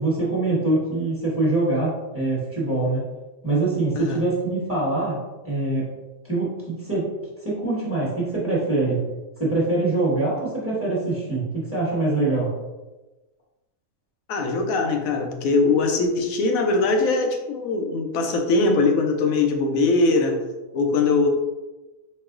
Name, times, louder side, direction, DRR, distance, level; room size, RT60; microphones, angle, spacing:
voice 1, 0.0-3.0 3.4-5.2 5.4-5.9 6.2-7.1 7.4-9.0 9.4-12.5, right 2 dB, 10° right, -6 dB, 1.1 m, -24 dB
voice 2, 14.3-20.4 20.7-21.3, left 3 dB, 90° left, 3 dB, 1.0 m, -21 dB
4.4 x 2.1 x 3.6 m, 1.1 s
omnidirectional pair, 1.4 m